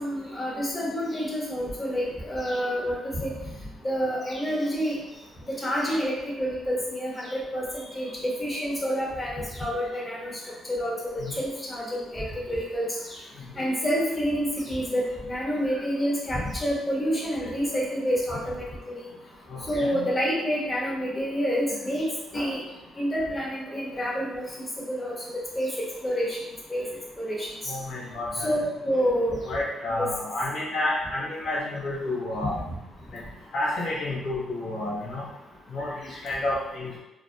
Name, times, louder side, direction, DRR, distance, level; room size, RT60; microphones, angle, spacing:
voice 1, 0.0-3.5 3.8-5.0 5.5-13.2 13.6-18.6 19.0-19.1 19.6-22.1 22.3-22.6 23.0-25.7 26.0-26.9 27.2-27.7 28.3-29.4 30.0-30.1 32.7-32.8 36.1-36.2, equal, 20° left, -4 dB, 0.7 m, -28 dB
voice 2, 19.5-20.0 27.6-28.6 29.5-32.6 33.1-33.2 33.5-35.3 35.7-36.9, left 2 dB, 70° left, -5 dB, 0.7 m, -30 dB
2.3 x 2.1 x 2.6 m, 0.92 s
cardioid pair, 90°, 0 cm